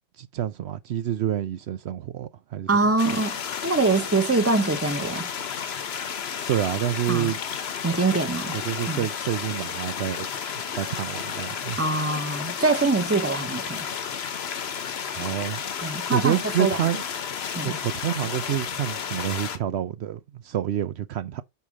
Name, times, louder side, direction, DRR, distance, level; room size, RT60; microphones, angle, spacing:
voice 1, 0.2-2.7 6.5-7.4 8.5-10.3 10.8-11.8 15.1-15.6 16.1-17.0 17.6-21.4, right 10 dB, 75° right, 0.9 m, -28 dB
voice 2, 2.7-3.4 3.6-5.3 7.1-7.3 7.8-8.6 8.9-9.1 11.8-13.8 15.8-16.8 17.5-17.8, right 3 dB, 15° right, 1.0 m, -24 dB
sound 1, 3.0-19.6, left 7 dB, 70° left, 1.1 m, -32 dB
6.8 x 4.7 x 4.9 m
omnidirectional pair, 1.1 m